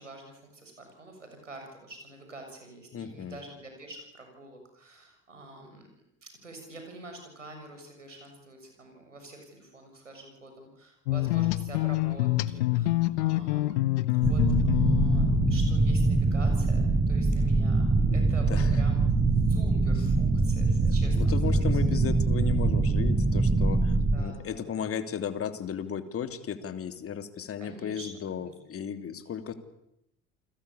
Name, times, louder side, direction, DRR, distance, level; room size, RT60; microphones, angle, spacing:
voice 1, 0.0-5.9 6.2-13.7 14.0-19.0 19.5-21.6 24.0-24.8 27.6-28.1 28.3-28.5, right 2 dB, 90° right, 4 dB, 6.9 m, -47 dB
voice 2, 2.9-3.4 18.0-18.8 19.9-20.1 20.8-29.5, left 7 dB, 40° left, 9 dB, 3.0 m, -35 dB
sound 1, 11.1-16.2, left 17 dB, 70° left, 1.2 m, -27 dB
sound 2, 14.2-24.2, right 3 dB, 20° right, 3.6 m, -24 dB
29.0 x 21.5 x 8.5 m, 0.81 s
figure-of-eight pair, 65°, 36 cm